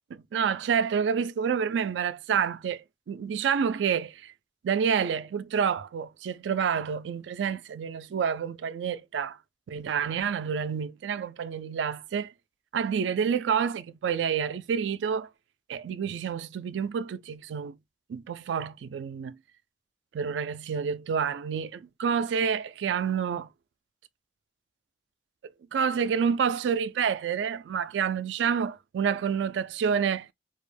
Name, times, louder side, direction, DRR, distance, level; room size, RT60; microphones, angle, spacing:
voice 1, 0.1-4.3 4.6-9.4 9.7-12.3 12.7-15.3 15.7-17.8 18.1-19.4 20.1-23.5 25.7-30.3, right 7 dB, 90° right, 0.3 m, -28 dB
2.4 x 2.1 x 3.2 m
head